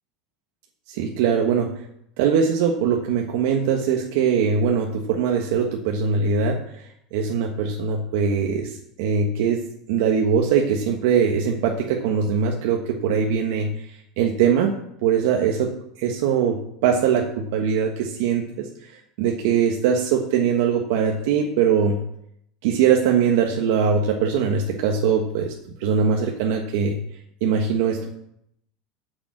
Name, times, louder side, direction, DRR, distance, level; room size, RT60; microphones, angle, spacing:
voice 1, 0.9-1.7 2.2-13.9 14.2-14.7 15.0-18.7 19.2-22.0 22.6-25.5 25.8-27.0 27.4-28.2, right 6 dB, 70° right, 2 dB, 1.3 m, -22 dB
8.8 x 7.0 x 7.7 m, 0.75 s
supercardioid pair, 170°, 0 cm